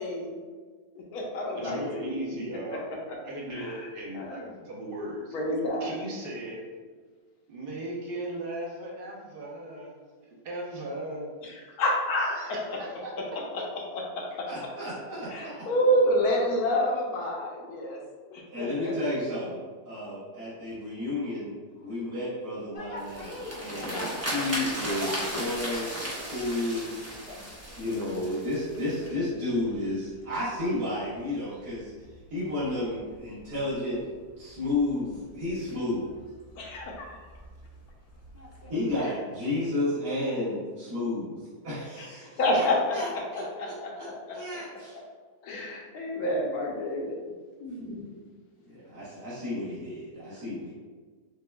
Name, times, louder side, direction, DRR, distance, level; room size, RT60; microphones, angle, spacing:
voice 1, 0.0-0.4 0.9-2.2 3.5-3.9 4.1-4.5 5.3-6.0 11.4-12.3 12.7-12.8 13.9-14.0 15.2-18.0 18.3-18.9 36.6-37.2 42.0-42.1 42.4-43.0 43.3-44.1 44.9-45.0 45.4-47.2 47.6-48.1 50.3-50.4, equal, 70° left, -1 dB, 1.2 m, -28 dB
voice 2, 1.5-2.9 3.2-5.4 5.8-6.6 7.5-11.3 12.3-13.4, right 1 dB, 45° right, -3 dB, 0.7 m, -37 dB
voice 3, 14.5-15.7 18.5-25.9 26.2-27.3 27.8-31.9 32.3-34.0 34.4-36.1 38.7-42.7 42.9-43.1 43.3-45.0 48.7-50.7, left 2 dB, 75° right, -13 dB, 2.0 m, -32 dB
sound 1, 22.7-39.0, left 1 dB, 45° left, 0.6 m, -47 dB
sound 2, 23.0-29.1, equal, 20° right, 0.4 m, -35 dB
6.7 x 2.3 x 2.2 m, 1.5 s
omnidirectional pair, 1.7 m